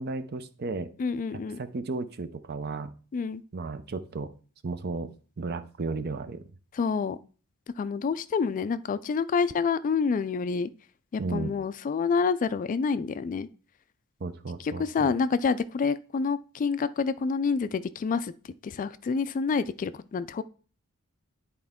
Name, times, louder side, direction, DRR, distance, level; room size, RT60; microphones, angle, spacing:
voice 1, 0.0-0.9 1.6-2.9 3.5-4.3 4.6-5.1 5.4-6.4 11.2-11.5 14.2-15.1, right 3 dB, 50° right, 12 dB, 0.6 m, -34 dB
voice 2, 1.0-1.6 3.1-3.4 6.7-7.2 7.8-10.7 11.1-13.5 14.6-18.3 18.6-20.4, left 5 dB, 40° left, 14 dB, 0.3 m, -28 dB
10.0 x 4.4 x 3.6 m, 0.39 s
head